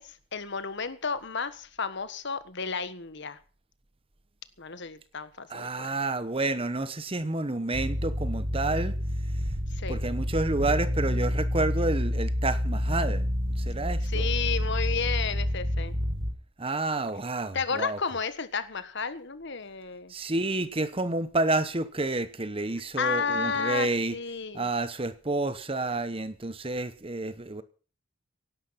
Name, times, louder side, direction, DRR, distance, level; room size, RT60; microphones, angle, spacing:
voice 1, 0.0-3.4 4.6-5.9 9.7-10.0 14.0-16.0 17.5-20.1 23.0-24.7, left 5 dB, 55° left, 1.4 m, -32 dB
voice 2, 5.5-8.9 9.9-13.3 13.6-14.2 16.6-18.0 20.1-24.2 24.5-27.6, right 2 dB, 25° right, 0.9 m, -29 dB
sound 1, 7.7-16.3, equal, 65° right, 5.5 m, -28 dB
17.0 x 11.5 x 5.8 m
head